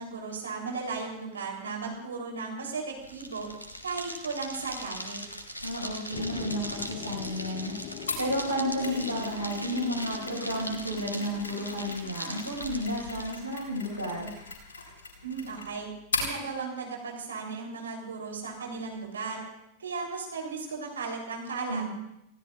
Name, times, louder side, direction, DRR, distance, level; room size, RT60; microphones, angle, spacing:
voice 1, 0.0-3.5 3.8-5.2 15.2-15.9 16.2-19.4 19.8-21.9, right 4 dB, 70° right, 0 dB, 3.8 m, -36 dB
sound 1, 3.0-13.3, equal, 85° left, 1.6 m, -40 dB
voice 2, 5.6-7.7 8.2-14.3 21.7-21.9, equal, 90° right, -3 dB, 6.1 m, -32 dB
sound 2, 6.1-12.5, left 9 dB, 40° left, 1.0 m, -43 dB
Mechanisms, 8.1-16.4, left 3 dB, 65° left, 4.3 m, -39 dB
30.0 x 16.5 x 2.6 m, 0.85 s
figure-of-eight pair, 90°, 0 cm